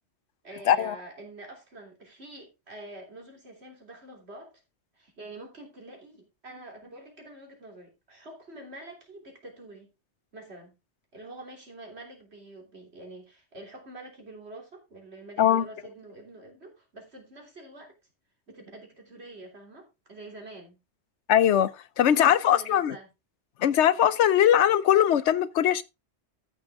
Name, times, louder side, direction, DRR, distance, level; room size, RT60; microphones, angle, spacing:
voice 1, 0.4-4.6 5.0-9.9 10.3-10.7 11.1-18.0 18.5-20.8 22.1-23.1, right 2 dB, 70° right, 3.5 m, -46 dB
voice 2, 21.3-21.7 22.0-23.0 23.6-25.8, left 10 dB, 85° left, 1.0 m, -21 dB
14.0 x 6.2 x 3.6 m
omnidirectional pair, 1.1 m